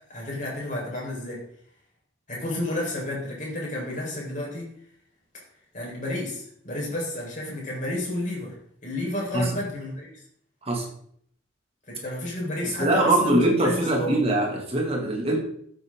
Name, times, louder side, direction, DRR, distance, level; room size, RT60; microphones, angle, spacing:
voice 1, 0.1-1.4 2.3-4.7 5.7-8.6 8.8-10.1 11.9-14.2, left 1 dB, 40° left, -3 dB, 4.5 m, -31 dB
voice 2, 12.6-15.4, right 1 dB, 30° right, 0 dB, 2.3 m, -23 dB
13.0 x 7.7 x 3.8 m, 0.63 s
head